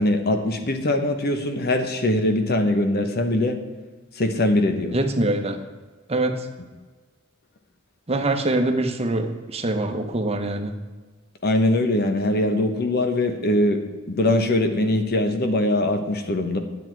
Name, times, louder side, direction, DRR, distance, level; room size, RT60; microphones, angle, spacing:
voice 1, 0.0-3.6 4.1-5.0 11.4-16.6, left 1 dB, 50° left, 6 dB, 1.1 m, -22 dB
voice 2, 4.9-5.6 6.1-6.5 8.1-10.7, right 2 dB, 30° right, 5 dB, 1.0 m, -24 dB
9.7 x 8.2 x 4.6 m, 1.3 s
head